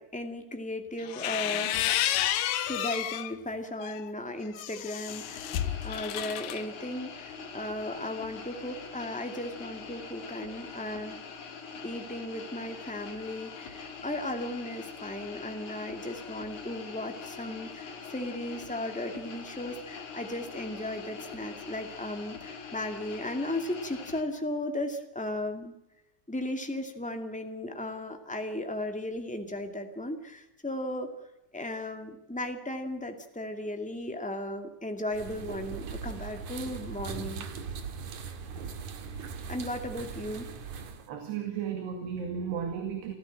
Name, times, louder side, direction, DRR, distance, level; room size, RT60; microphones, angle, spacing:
voice 1, 0.0-1.8 2.7-11.2 11.8-25.7 26.3-31.2 31.5-37.5 39.5-40.5, left 1 dB, 10° left, 5 dB, 0.4 m, -36 dB
sound 1, 1.0-3.3 3.8-6.6, left 12 dB, 70° left, 2.2 m, -31 dB
sound 2, 5.1-24.2, left 5 dB, 50° left, 4.1 m, -43 dB
sound 3, 35.1-41.1, right 6 dB, 55° right, 2.9 m, -39 dB
voice 2, 41.1-43.1, right 7 dB, 80° right, 5 dB, 4.2 m, -34 dB
29.0 x 15.0 x 7.6 m, 0.90 s
omnidirectional pair, 4.7 m